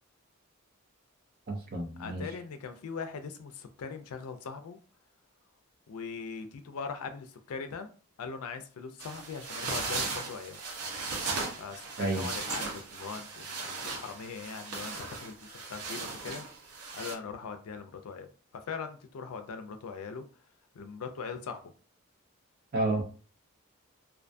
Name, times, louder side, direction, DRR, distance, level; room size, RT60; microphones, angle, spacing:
voice 1, 1.5-2.3 12.0-12.3 22.7-23.0, right 2 dB, 40° right, 0.5 m, -30 dB
voice 2, 2.0-4.8 5.9-7.9 8.2-10.6 11.6-16.4 16.9-20.3 20.7-21.7, left 5 dB, 80° left, 0.4 m, -41 dB
sound 1, 9.0-17.1, right 4 dB, 85° right, 0.7 m, -37 dB
2.5 x 2.2 x 2.5 m
head